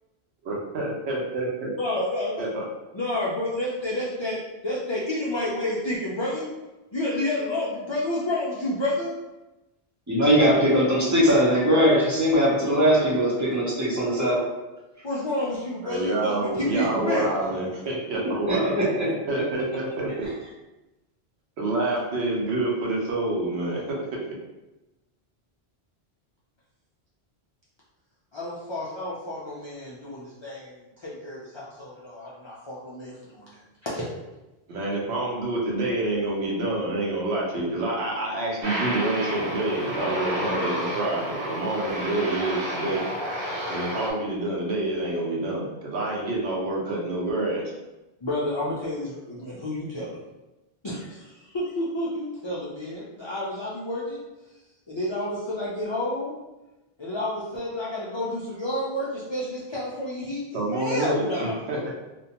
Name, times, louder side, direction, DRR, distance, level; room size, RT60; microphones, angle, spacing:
voice 1, 0.5-1.7 2.4-2.6 15.8-18.7 19.3-20.3 21.6-24.0 34.7-43.0 43.7-47.6 60.5-61.8, right 2 dB, 90° right, -2 dB, 0.9 m, -27 dB
voice 2, 1.8-2.4 2.9-6.5 6.9-9.1 15.0-17.3 28.3-34.1 48.2-50.2 50.8-54.2 54.4-54.5 54.9-56.3 57.0-61.6, left 1 dB, 50° left, -6 dB, 0.3 m, -30 dB
voice 3, 10.1-14.4 18.2-19.1, equal, 20° right, -6 dB, 0.5 m, -21 dB
Aircraft, 38.6-44.1, equal, 65° right, 0.8 m, -30 dB
2.6 x 2.2 x 2.8 m, 1.0 s
omnidirectional pair, 1.1 m